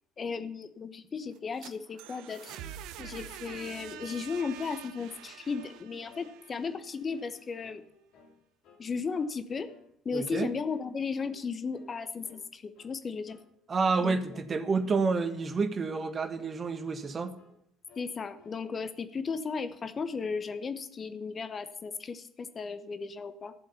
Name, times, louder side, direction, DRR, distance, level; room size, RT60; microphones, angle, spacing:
voice 1, 0.2-2.6 3.0-7.8 8.8-9.7 10.0-13.4 14.0-14.4 18.0-23.5, left 5 dB, 35° left, 12 dB, 0.9 m, -35 dB
sound 1, 1.3-7.2, right 10 dB, 60° right, 0.7 m, -46 dB
sound 2, 2.5-2.7 3.0-3.2 3.5-4.7 5.0-5.3 5.6-5.8 6.1-6.3 6.6-7.4 7.6-8.4 8.6-8.9 9.2-9.4 9.7-9.9 10.2-10.4 10.7-10.9 11.2-11.4 11.7-11.9 12.2-12.5 12.8-12.9 13.3-13.5 13.8-14.0 14.3-14.5 14.8-15.5 15.8-16.6 16.8-17.6 17.9-18.6, left 3 dB, 60° left, 3.0 m, -58 dB
voice 2, 10.1-10.5 13.7-17.3, right 4 dB, 30° right, 10 dB, 1.4 m, -29 dB
13.5 x 7.7 x 5.5 m, 0.72 s
figure-of-eight pair, 60°, 0 cm